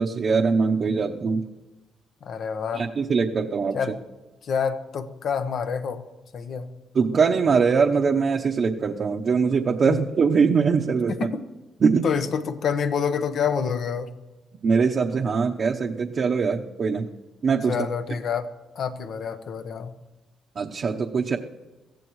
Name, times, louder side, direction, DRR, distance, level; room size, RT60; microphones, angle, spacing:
voice 1, 0.0-1.4 2.7-3.8 6.9-11.3 11.8-12.1 14.6-17.1 17.4-17.9 20.6-21.4, right 5 dB, 50° right, 0 dB, 0.9 m, -22 dB
voice 2, 2.2-2.9 3.7-4.0 4.4-6.0 6.3-6.7 9.9-10.0 11.2-11.5 12.0-14.1 17.7-18.5 18.7-19.9, left 6 dB, 60° left, 9 dB, 1.1 m, -27 dB
23.0 x 15.5 x 3.2 m, 1.1 s
cardioid pair, 90°, 0 cm